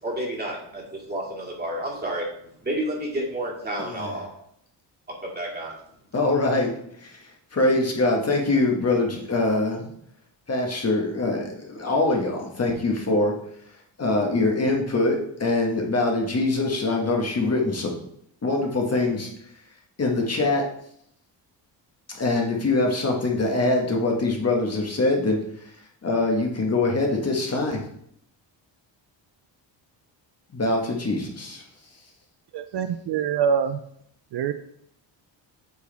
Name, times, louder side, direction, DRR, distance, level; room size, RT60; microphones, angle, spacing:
voice 1, 0.0-2.3 2.6-4.3 5.2-5.7, right 1 dB, 20° right, -3 dB, 2.3 m, -30 dB
voice 2, 3.8-4.2 6.1-6.7 7.0-7.2 7.5-9.9 10.5-13.3 14.0-17.9 18.4-19.3 20.0-20.7 22.2-25.4 26.0-27.8 30.5-31.6, left 2 dB, 35° left, 0 dB, 1.5 m, -23 dB
voice 3, 32.5-33.8 34.3-34.5, right 7 dB, 65° right, 9 dB, 0.5 m, -24 dB
8.3 x 4.8 x 3.4 m, 0.69 s
cardioid pair, 130°, 45 cm